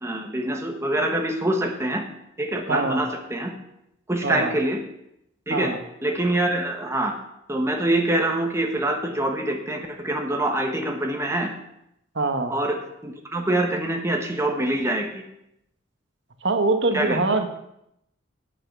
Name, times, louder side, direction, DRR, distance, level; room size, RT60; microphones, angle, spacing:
voice 1, 0.0-2.0 2.4-3.5 4.1-4.8 5.5-5.7 6.0-7.1 7.5-11.5 12.5-15.2 16.9-17.2, right 1 dB, 15° right, 2 dB, 1.3 m, -25 dB
voice 2, 2.7-3.0 4.2-4.5 5.5-5.8 12.1-12.5 16.4-17.5, right 3 dB, 65° right, 6 dB, 1.2 m, -23 dB
10.0 x 8.2 x 6.1 m, 0.79 s
head